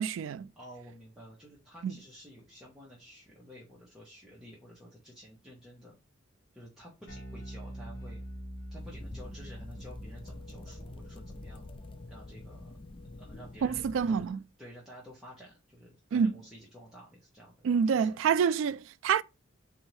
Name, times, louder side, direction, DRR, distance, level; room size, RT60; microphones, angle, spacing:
voice 1, 0.0-0.5 1.8-1.9 13.6-14.4 16.1-16.3 17.6-19.2, right 6 dB, 80° right, 0.3 m, -27 dB
voice 2, 0.6-6.0 6.5-8.2 8.7-11.6 12.1-12.7 13.2-14.2 14.6-18.3, equal, 5° right, 1.0 m, -51 dB
Bass guitar, 7.1-13.5, equal, 70° left, 2.4 m, -45 dB
sound 1, 8.8-14.3, left 2 dB, 25° left, 0.4 m, -47 dB
4.1 x 2.7 x 4.6 m
head